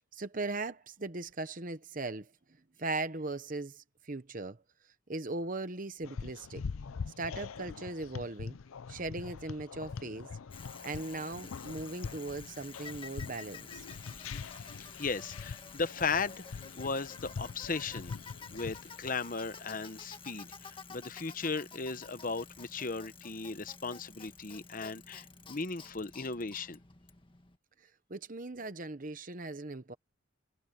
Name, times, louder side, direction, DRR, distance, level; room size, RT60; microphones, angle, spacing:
voice 1, 0.1-2.3 2.8-4.6 5.1-6.6 7.2-8.6 8.9-10.3 10.8-13.9 27.8-29.9, right 2 dB, 40° right, 1.0 m, -39 dB
sound 1, 6.0-19.1, left 5 dB, 85° left, 0.5 m, -43 dB
Bicycle, 10.5-27.6, left 5 dB, 25° left, 1.8 m, -50 dB
voice 2, 15.0-18.1 18.5-26.8, left 4 dB, 40° left, 0.9 m, -36 dB
head